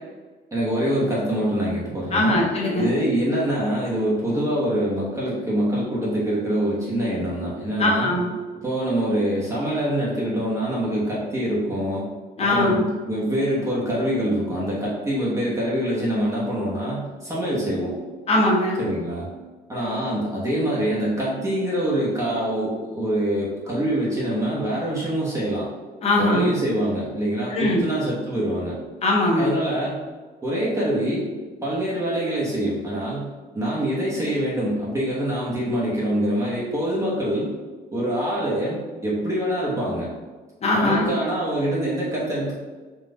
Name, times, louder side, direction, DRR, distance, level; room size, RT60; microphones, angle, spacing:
voice 1, 0.5-2.4 2.7-8.1 8.6-12.1 12.4-17.9 18.8-19.3 19.7-25.7 26.2-28.8 29.4-30.0 30.4-31.3 31.6-33.3 33.5-37.5 37.9-40.1 40.7-42.5, right 1 dB, 20° right, -7 dB, 1.0 m, -25 dB
voice 2, 2.1-2.9 7.8-8.2 12.4-12.8 18.3-18.8 26.0-26.5 27.5-27.8 29.0-29.5 40.6-41.1, left 1 dB, 40° left, -2 dB, 1.0 m, -20 dB
3.9 x 2.4 x 3.8 m, 1.3 s
cardioid pair, 110°, 17 cm